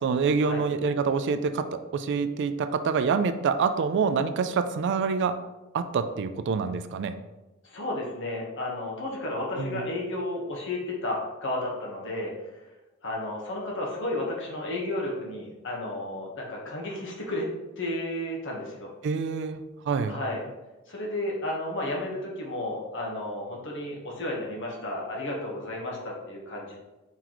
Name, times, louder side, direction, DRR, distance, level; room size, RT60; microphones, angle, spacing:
voice 1, 0.0-5.4 5.7-7.2 9.6-9.8 19.0-19.6 19.9-20.2, right 5 dB, 60° right, 11 dB, 0.3 m, -26 dB
voice 2, 7.6-12.3 13.0-17.5 17.8-18.9 20.1-20.4 20.9-26.8, left 1 dB, 60° left, -2 dB, 1.2 m, -32 dB
4.5 x 3.9 x 3.0 m, 1.0 s
head